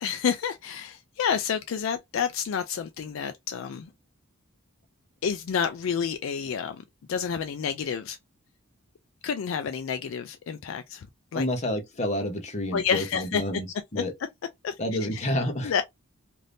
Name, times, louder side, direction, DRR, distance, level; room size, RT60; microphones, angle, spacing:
voice 1, 0.0-3.9 5.2-6.8 7.1-8.2 9.2-11.1 11.3-11.5 12.7-13.4 14.0-14.1 14.6-14.8 15.1-15.2 15.6-15.8, left 7 dB, 65° left, 0.3 m, -29 dB
voice 2, 11.3-13.7 13.9-14.1 14.8-15.7, left 1 dB, 30° left, 0.8 m, -29 dB
2.6 x 2.6 x 3.3 m
head